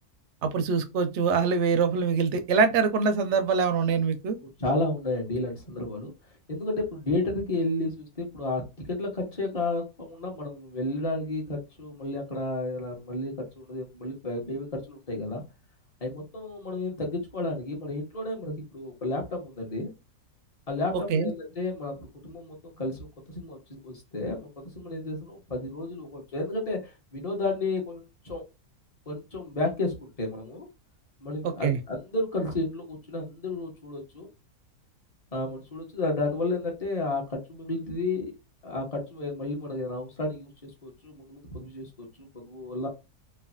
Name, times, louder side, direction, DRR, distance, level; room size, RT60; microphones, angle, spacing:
voice 1, 0.4-4.4 21.1-21.3 31.4-31.8, right 5 dB, 65° right, 0.7 m, -24 dB
voice 2, 4.6-6.1 6.5-8.6 8.9-15.4 16.0-19.9 20.7-24.5 24.7-28.4 29.1-30.7 31.2-34.3 35.3-38.3 38.6-42.9, left 2 dB, 30° left, 0.9 m, -32 dB
3.1 x 2.3 x 2.5 m
omnidirectional pair, 1.6 m